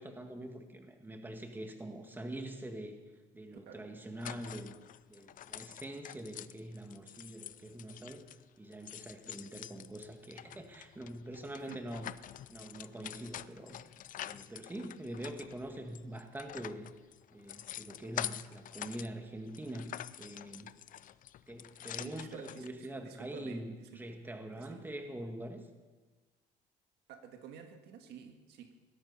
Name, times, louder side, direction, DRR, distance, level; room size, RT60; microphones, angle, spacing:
voice 1, 0.0-3.0 3.3-4.8 5.1-8.2 8.6-12.1 12.5-13.8 14.2-16.9 17.3-20.7 21.5-25.6, right 1 dB, 10° right, 1.9 m, -44 dB
sound 1, 4.2-8.4 8.7-19.1 19.4-22.7, left 12 dB, 50° left, 0.5 m, -46 dB
voice 2, 21.7-24.0 24.6-24.9 27.1-28.7, right 7 dB, 80° right, 1.7 m, -51 dB
18.0 x 12.5 x 5.6 m
cardioid pair, 110°, 17 cm